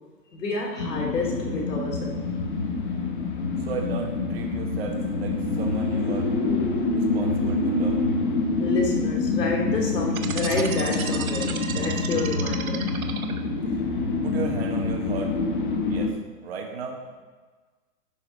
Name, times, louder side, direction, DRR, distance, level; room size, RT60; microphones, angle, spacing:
voice 1, 0.3-2.2 8.6-12.8, left 3 dB, 85° left, -1 dB, 2.7 m, -29 dB
sound 1, 0.8-16.1, left 3 dB, 35° left, 0.8 m, -26 dB
voice 2, 3.6-6.3 6.9-8.0 13.1-13.2 13.8-13.9 14.2-15.4 15.9-16.2 16.4-17.2, right 5 dB, 40° right, 2 dB, 1.3 m, -35 dB
sound 2, 10.1-13.7, right 7 dB, 60° right, 1.0 m, -33 dB
11.0 x 4.7 x 5.1 m, 1.4 s
hypercardioid pair, 165°, 47 cm